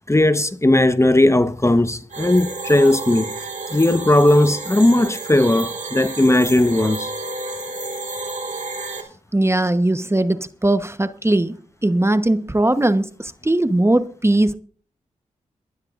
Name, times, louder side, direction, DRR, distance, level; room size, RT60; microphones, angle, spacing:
voice 1, 0.1-3.3 3.7-7.1, left 1 dB, 20° left, 1.1 m, -17 dB
sound 1, 2.1-9.0, right 3 dB, 60° right, 3.2 m, -31 dB
voice 2, 9.3-11.5 11.8-13.1 13.4-14.6, right 1 dB, 20° right, 1.0 m, -19 dB
23.0 x 11.5 x 2.5 m
cardioid pair, 40°, 14 cm